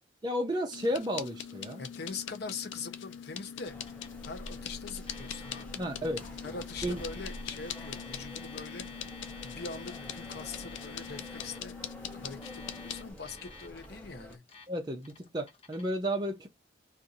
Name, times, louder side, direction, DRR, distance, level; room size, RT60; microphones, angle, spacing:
voice 1, 0.2-1.8 5.8-6.2 6.5-7.0 14.7-16.5, equal, 25° right, 0.6 m, -33 dB
sound 1, 0.7-13.1, left 8 dB, 90° left, 0.5 m, -43 dB
voice 2, 1.8-3.8 4.3-5.8 6.4-9.1 9.4-11.8 12.1-14.4, left 4 dB, 60° left, 0.7 m, -43 dB
sound 2, 3.6-14.4, equal, 10° left, 0.9 m, -48 dB
Alarm, 3.9-4.2 4.4-4.5 5.0-5.6 6.6-11.6 12.3-13.9 14.3-14.7 15.0-15.8, left 4 dB, 30° left, 1.0 m, -51 dB
2.5 x 2.5 x 4.1 m
head